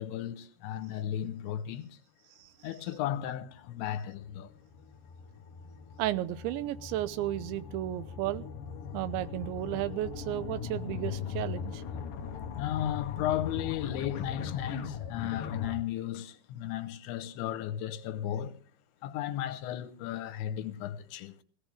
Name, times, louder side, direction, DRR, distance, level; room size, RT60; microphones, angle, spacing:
voice 1, 0.0-2.0 2.6-4.5 12.6-18.6 19.0-21.4, left 11 dB, 90° left, 3.3 m, -35 dB
sound 1, 3.4-15.7, left 7 dB, 60° left, 2.4 m, -40 dB
voice 2, 6.0-8.5 8.9-11.8, right 14 dB, 85° right, 3.1 m, -33 dB
18.0 x 17.5 x 3.4 m
omnidirectional pair, 5.2 m